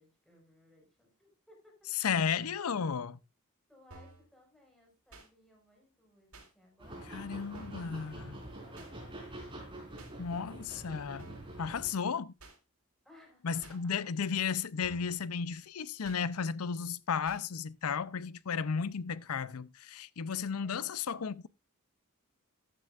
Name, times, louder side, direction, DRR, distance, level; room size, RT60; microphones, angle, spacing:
voice 1, 0.0-1.9 2.5-2.8 3.7-9.2 13.0-14.1 20.6-20.9, left 1 dB, ahead, 5.1 m, -62 dB
voice 2, 1.9-3.1 7.1-8.4 10.2-12.3 13.4-21.5, left 6 dB, 85° left, 0.6 m, -34 dB
sound 1, 3.9-4.2 5.1-5.3 6.3-6.5 7.5-7.9 8.8-8.9 10.0-10.1 11.2-11.5 12.4-12.6 13.6-13.8 14.8-15.2 16.0-16.2 17.3-17.4, right 2 dB, 90° right, 3.9 m, -52 dB
sound 2, 6.8-11.9, right 1 dB, 25° right, 4.3 m, -46 dB
13.5 x 10.0 x 2.5 m
head